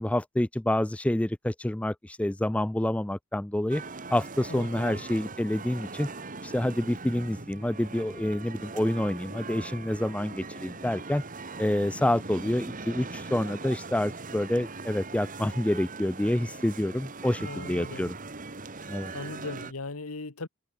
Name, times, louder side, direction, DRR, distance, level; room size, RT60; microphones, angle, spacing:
voice 1, 0.0-3.8 4.1-6.1 6.4-11.2 11.6-18.1 18.9-19.1, left 1 dB, 5° left, 0.3 m, -28 dB
sound 1, 3.7-19.7, right 3 dB, 40° right, 1.8 m, -40 dB
voice 2, 4.5-5.0 17.4-18.1 19.1-20.5, left 3 dB, 90° left, 1.5 m, -38 dB
head